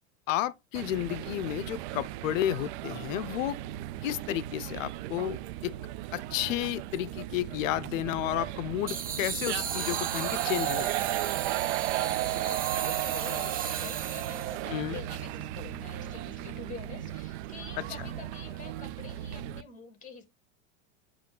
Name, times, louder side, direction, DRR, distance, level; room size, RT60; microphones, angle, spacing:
voice 1, 0.3-3.6 4.0-5.7 6.1-11.2 14.7-15.0 18.0-18.1, left 13 dB, 75° left, 0.6 m, -32 dB
sound 1, 0.7-19.6, right 18 dB, 55° right, 0.5 m, -35 dB
sound 2, 1.1-19.6, right 7 dB, 40° right, 1.2 m, -45 dB
sound 3, 8.9-14.6, right 7 dB, 20° right, 0.8 m, -36 dB
voice 2, 12.0-20.3, left 6 dB, 20° left, 2.8 m, -46 dB
9.1 x 3.1 x 3.7 m
supercardioid pair, 120°, 39 cm